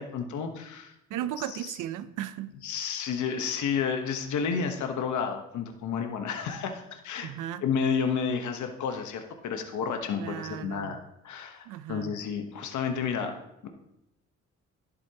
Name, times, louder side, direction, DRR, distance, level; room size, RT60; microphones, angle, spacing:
voice 1, 0.0-0.9 1.4-1.8 2.6-7.3 7.6-11.0 11.2-13.7, left 6 dB, 75° left, 1.1 m, -31 dB
voice 2, 1.1-2.6 7.2-7.6 10.1-11.0 11.7-12.1, right 12 dB, 85° right, 0.6 m, -36 dB
10.5 x 8.3 x 2.9 m
cardioid pair, 90°, 30 cm